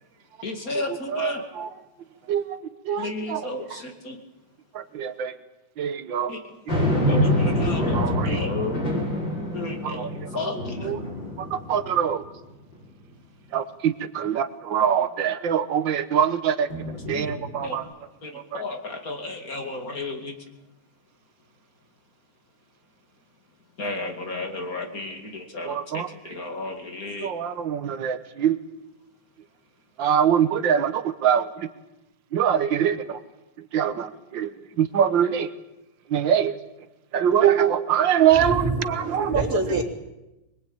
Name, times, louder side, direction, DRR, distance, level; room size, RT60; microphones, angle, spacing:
voice 1, 0.4-1.4 3.0-4.2 6.3-6.4 7.1-9.1 9.5-10.1 10.3-10.9 16.9-17.3 17.6-17.8 18.2-20.4 23.8-27.3, left 2 dB, 50° left, 2.9 m, -33 dB
voice 2, 1.1-1.7 2.3-2.4 2.9-3.4 5.0-5.3 5.8-6.3 7.9-8.4 9.8-10.1 10.8-11.0 11.5-12.2 13.5-16.7 17.1-17.8 18.5-18.6 25.7-26.1 27.2-28.6 30.0-31.4 32.3-33.0 33.7-34.1 34.3-34.5 34.8-35.5 36.1-36.5 37.1-39.4, right 9 dB, 85° right, 1.8 m, -23 dB
sound 1, 6.7-12.2 12.7-12.8 16.7-17.8, left 1 dB, 75° left, 7.4 m, -26 dB
voice 3, 38.3-39.8, right 2 dB, 50° right, 4.0 m, -26 dB
24.5 x 21.0 x 8.9 m
omnidirectional pair, 2.0 m